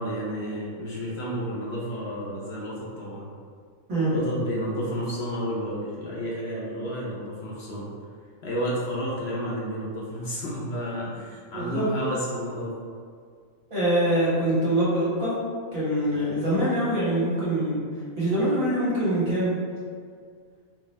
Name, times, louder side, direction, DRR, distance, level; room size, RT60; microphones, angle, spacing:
voice 1, 0.0-3.3 4.1-7.9 8.4-12.7 16.1-16.3, equal, 60° left, -6 dB, 0.8 m, -31 dB
voice 2, 11.5-11.9 13.7-15.4 15.7-17.8 18.2-19.5, right 1 dB, 75° right, -10 dB, 1.8 m, -24 dB
3.9 x 2.3 x 3.2 m, 2.1 s
omnidirectional pair, 1.4 m